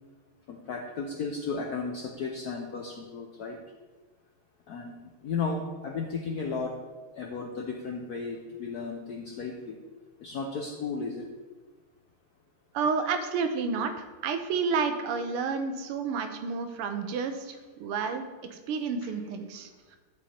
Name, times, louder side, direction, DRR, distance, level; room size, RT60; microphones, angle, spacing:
voice 1, 0.5-3.6 4.7-6.7 7.2-9.7 10.2-11.3, left 4 dB, 70° left, 1 dB, 0.9 m, -34 dB
voice 2, 12.7-20.0, right 5 dB, 90° right, 7 dB, 1.7 m, -30 dB
10.5 x 4.9 x 4.3 m, 1.3 s
omnidirectional pair, 2.4 m